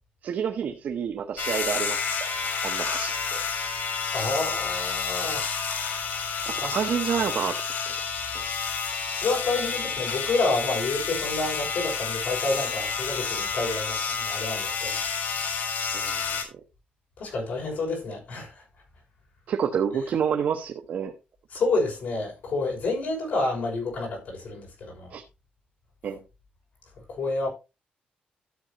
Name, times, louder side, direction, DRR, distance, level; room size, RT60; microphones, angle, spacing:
voice 1, 0.2-2.3 2.6-3.4 6.5-7.6 7.9-8.0 8.3-8.4 15.9-16.4 19.5-21.1 25.1-25.2 26.0-26.2, right 7 dB, 60° right, 0.9 m, -29 dB
sound 1, 1.4-16.4, left 6 dB, 85° left, 3.3 m, -30 dB
voice 2, 4.1-5.5 6.6-6.9 9.1-15.0 17.2-18.6 21.5-25.1 27.1-27.5, left 3 dB, 60° left, 6.0 m, -29 dB
13.0 x 7.8 x 2.9 m
wide cardioid pair, 175°, 3 cm